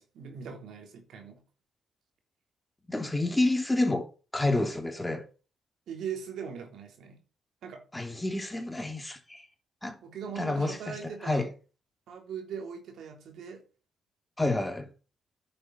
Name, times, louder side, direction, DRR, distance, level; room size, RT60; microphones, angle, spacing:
voice 1, 0.0-1.4 5.9-7.2 7.6-7.8 10.0-11.5 12.1-13.6, right 7 dB, 75° right, 3.5 m, -40 dB
voice 2, 2.9-4.1 4.3-5.2 7.9-9.5 9.8-10.0 10.4-11.0 11.2-11.5 14.4-14.9, left 2 dB, 10° left, 3.1 m, -29 dB
9.9 x 7.9 x 6.5 m
cardioid pair, 80°, 0 cm